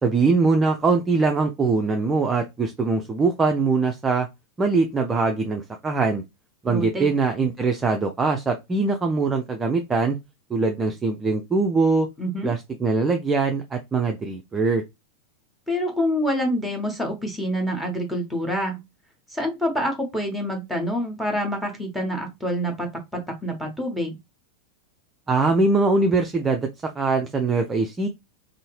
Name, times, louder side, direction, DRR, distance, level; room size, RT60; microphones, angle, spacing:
voice 1, 0.0-4.3 4.6-6.2 6.6-10.2 10.5-12.1 12.4-14.8 25.3-26.7 27.0-28.1, right 3 dB, 15° right, 0.4 m, -22 dB
voice 2, 6.7-7.1 12.2-12.5 15.7-18.8 19.3-24.1, equal, ahead, 1.0 m, -27 dB
2.7 x 2.6 x 3.0 m
figure-of-eight pair, 90°, 0 cm